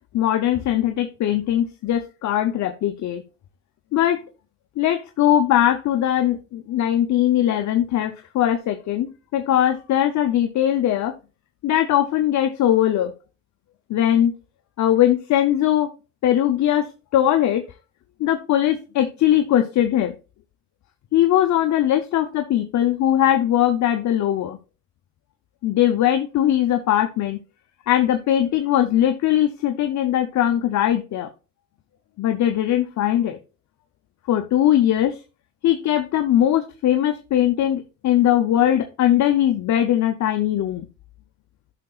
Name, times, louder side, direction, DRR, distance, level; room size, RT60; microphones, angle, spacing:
voice 1, 0.1-3.2 3.9-4.2 4.8-11.1 11.6-13.1 13.9-14.3 14.8-15.9 16.2-17.6 18.2-20.1 21.1-24.6 25.6-27.4 27.9-31.3 32.2-33.4 34.3-35.2 35.6-40.9, left 11 dB, 70° left, 7 dB, 0.7 m, -20 dB
11.5 x 5.8 x 2.4 m, 0.32 s
cardioid pair, 90°, 30 cm